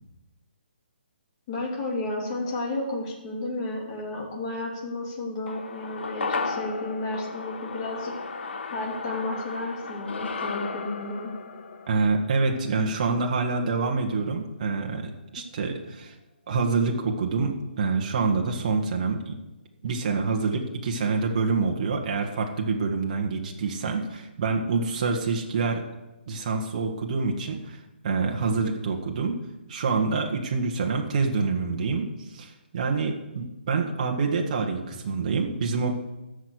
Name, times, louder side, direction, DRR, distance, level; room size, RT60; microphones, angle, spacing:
voice 1, 1.5-8.1 8.7-11.3, left 2 dB, 30° left, -1 dB, 3.0 m, -32 dB
sound 1, 5.5-14.0 14.3-14.4, left 4 dB, 75° left, 1.3 m, -35 dB
voice 2, 11.9-16.1 16.5-19.4 19.8-25.8 26.3-27.8 28.0-29.3 29.7-36.0, right 4 dB, 40° right, 2 dB, 1.6 m, -26 dB
13.5 x 6.4 x 8.2 m, 1.0 s
hypercardioid pair, 165°, 6 cm